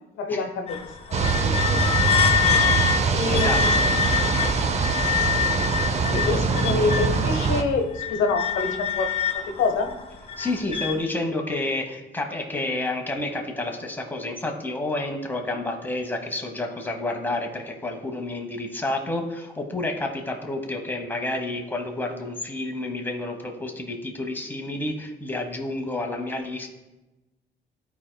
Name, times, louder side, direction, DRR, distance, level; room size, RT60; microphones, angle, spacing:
voice 1, 0.2-2.2 3.1-4.3 6.1-9.9, left 4 dB, 85° left, 4 dB, 0.9 m, -27 dB
sound 1, 0.7-7.3 7.7-11.0, left 8 dB, 35° left, 1.1 m, -26 dB
sound 2, 1.1-7.6, right 5 dB, 35° right, 0.6 m, -23 dB
voice 2, 3.3-4.0 10.4-26.7, left 2 dB, 10° left, 2 dB, 1.1 m, -30 dB
13.0 x 4.5 x 2.2 m, 1.1 s
cardioid pair, 90°, 20 cm